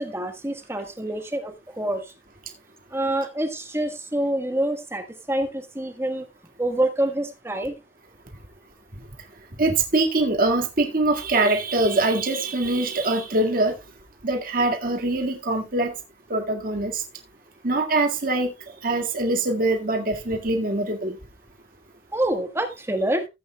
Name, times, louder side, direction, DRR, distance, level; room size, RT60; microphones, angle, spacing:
voice 1, 0.0-2.1 2.9-6.2 6.6-7.7 22.1-23.3, right 1 dB, 15° right, 1.5 m, -26 dB
voice 2, 9.6-13.7 14.2-15.9 16.3-17.0 17.6-21.2, right 2 dB, 50° right, 2.0 m, -23 dB
16.0 x 8.6 x 2.3 m
head